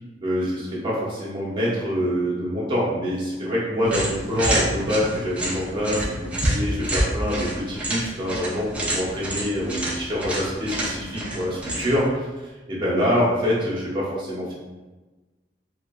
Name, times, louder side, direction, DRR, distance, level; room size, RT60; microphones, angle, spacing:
voice 1, 0.2-14.5, equal, 25° right, -7 dB, 0.9 m, -25 dB
sound 1, 3.8-12.1, right 1 dB, 5° right, 0.5 m, -28 dB
2.9 x 2.4 x 2.2 m, 1.2 s
head